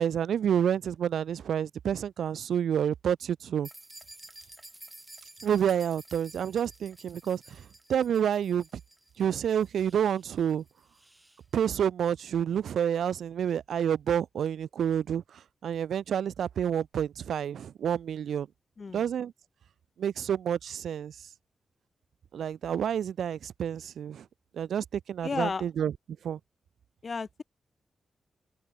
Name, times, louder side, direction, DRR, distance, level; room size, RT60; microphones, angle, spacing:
voice 1, 0.0-3.7 5.4-7.6 7.9-8.7 9.2-10.6 11.5-15.2 15.6-18.5 18.9-19.3 20.0-21.1 22.3-24.2 24.5-25.9 26.2-26.4, right 9 dB, 85° right, 0.4 m, -29 dB
sound 1, 3.6-11.4, right 1 dB, 15° right, 2.3 m, -52 dB
voice 2, 25.2-25.6 27.0-27.4, left 4 dB, 45° left, 0.7 m, -33 dB
cardioid pair, 80°, 0 cm